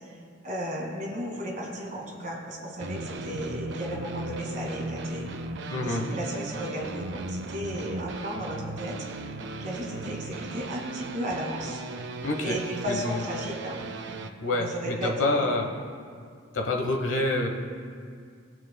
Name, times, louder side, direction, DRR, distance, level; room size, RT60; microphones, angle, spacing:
voice 1, 0.4-5.3 5.8-9.0 9.6-11.8 12.4-13.8 14.4-15.5, equal, 40° right, -1 dB, 1.6 m, -34 dB
sound 1, 2.8-14.3, right 2 dB, 60° right, 0.5 m, -37 dB
voice 2, 5.7-6.1 12.2-12.6 12.9-13.2 14.4-15.7 16.5-17.5, left 2 dB, 70° left, 2 dB, 1.0 m, -27 dB
19.0 x 7.5 x 2.2 m, 2.2 s
head